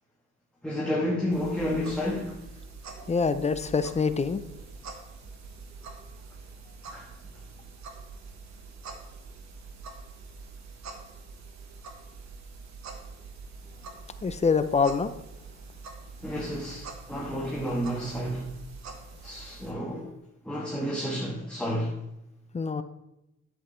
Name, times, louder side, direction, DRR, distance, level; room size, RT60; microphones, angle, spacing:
voice 1, 0.6-2.4 6.9-7.1 16.2-18.5 19.2-20.1 20.4-22.0, equal, 5° left, 1.5 m, -30 dB
sound 1, 1.3-19.7, right 4 dB, 65° right, 1.4 m, -45 dB
voice 2, 3.1-4.4 14.2-15.1 22.5-22.8, left 5 dB, 20° left, 0.6 m, -25 dB
9.2 x 8.2 x 3.3 m
cardioid pair, 90°, 30 cm